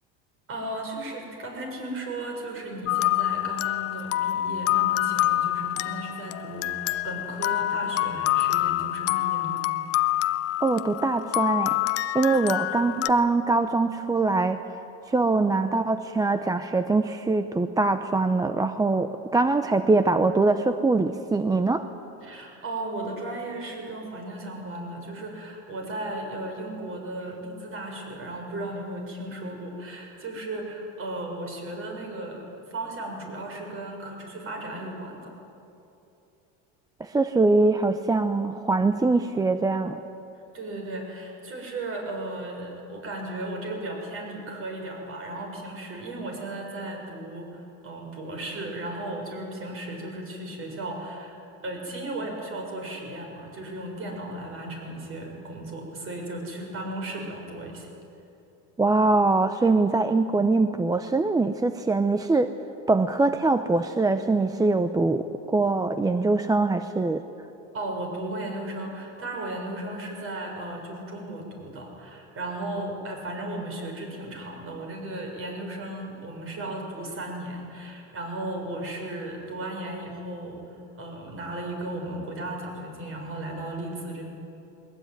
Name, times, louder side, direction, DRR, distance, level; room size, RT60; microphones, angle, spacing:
voice 1, 0.5-9.7 12.3-12.7 22.2-35.3 40.3-51.4 51.6-57.9 67.7-84.3, right 1 dB, 40° right, 1 dB, 6.8 m, -35 dB
sound 1, 2.9-13.1, left 15 dB, 45° left, 0.7 m, -26 dB
voice 2, 10.6-11.8 12.1-14.6 15.1-21.9 37.0-40.0 58.8-62.5 62.9-67.2, right 3 dB, 10° right, 9 dB, 0.6 m, -23 dB
21.0 x 20.5 x 9.4 m, 2.8 s
cardioid pair, 130°, 34 cm